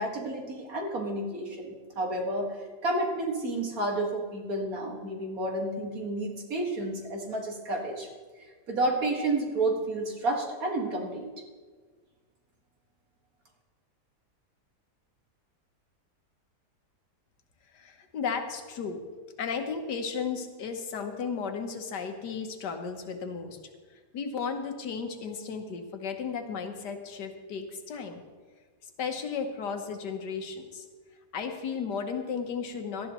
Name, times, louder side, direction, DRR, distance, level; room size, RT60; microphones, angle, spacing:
voice 1, 0.0-8.1 8.4-11.3, right 2 dB, 60° right, 0 dB, 2.3 m, -31 dB
voice 2, 17.7-19.0 19.4-23.6 24.1-28.2 28.8-30.9 31.3-33.1, left 5 dB, 80° left, 5 dB, 1.7 m, -34 dB
18.0 x 12.5 x 3.0 m, 1.5 s
omnidirectional pair, 1.8 m